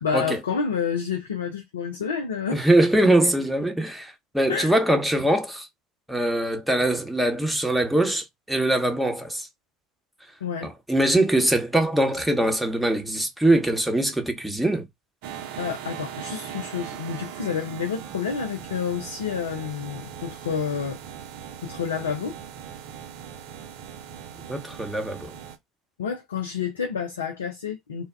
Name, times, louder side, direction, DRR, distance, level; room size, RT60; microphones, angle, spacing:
voice 1, 0.0-2.7 4.5-4.8 10.4-10.7 15.6-21.0 21.6-22.4 26.0-28.1, left 6 dB, 80° left, 0.4 m, -29 dB
voice 2, 2.5-5.7 6.1-9.5 10.9-14.8 24.5-25.4, right 1 dB, 5° right, 0.9 m, -22 dB
sound 1, 15.2-25.6, right 9 dB, 65° right, 0.6 m, -39 dB
2.2 x 2.1 x 3.4 m
figure-of-eight pair, 65°, 0 cm